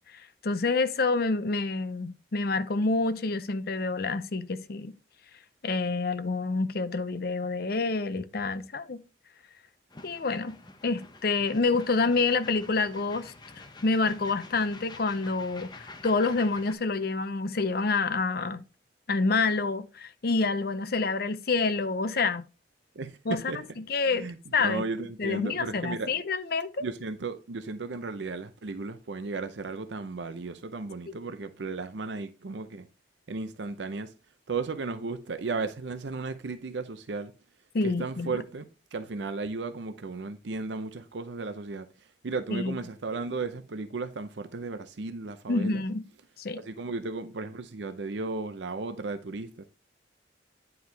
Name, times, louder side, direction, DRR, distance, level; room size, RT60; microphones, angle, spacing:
voice 1, 0.1-4.9 5.6-9.0 10.0-10.6 10.8-13.3 13.8-18.6 19.1-22.4 23.2-23.4 23.8-24.8 25.2-26.8 37.7-38.4 42.5-42.8 45.5-46.0 46.4-46.6, left 3 dB, 55° left, 0.6 m, -28 dB
sound 1, 9.9-16.7, left 3 dB, 25° left, 0.8 m, -48 dB
voice 2, 23.0-23.6 24.1-26.1 26.8-32.9 33.3-34.1 34.5-37.3 37.8-38.6 38.9-41.9 42.2-45.8 46.5-49.7, right 3 dB, 75° right, 0.6 m, -35 dB
9.4 x 4.7 x 3.4 m
head